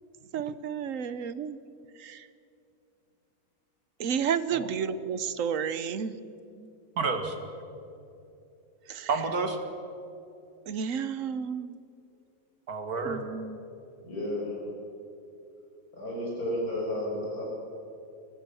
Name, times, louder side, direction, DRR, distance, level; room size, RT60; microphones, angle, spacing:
voice 1, 0.3-1.6 2.0-2.3 4.0-6.2 8.9-9.1 10.7-11.8 13.0-13.6, right 7 dB, 65° right, 14 dB, 1.2 m, -31 dB
voice 2, 7.0-7.3 9.1-9.6 12.7-13.2 14.7-14.8, right 4 dB, 80° right, 5 dB, 2.5 m, -30 dB
voice 3, 14.0-14.5 15.9-17.4, left 1 dB, 80° left, -3 dB, 6.8 m, -32 dB
24.0 x 19.0 x 7.0 m, 2.7 s
omnidirectional pair, 1.6 m